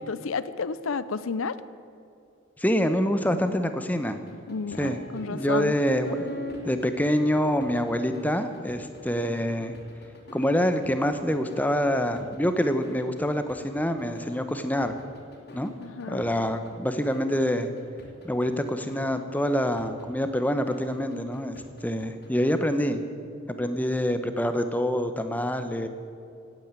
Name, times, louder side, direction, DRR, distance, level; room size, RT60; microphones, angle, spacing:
voice 1, 0.0-1.6 4.5-5.8 15.8-16.2, left 4 dB, 75° left, 15 dB, 0.6 m, -31 dB
voice 2, 2.6-4.2 4.8-5.0 5.3-6.3 6.6-9.7 10.3-15.0 15.5-15.7 16.1-17.7 18.2-23.0 23.5-25.9, equal, 10° left, 8 dB, 0.8 m, -26 dB
sound 1, 4.0-22.7, equal, 50° left, 2.9 m, -43 dB
17.0 x 9.2 x 9.0 m, 2.6 s
head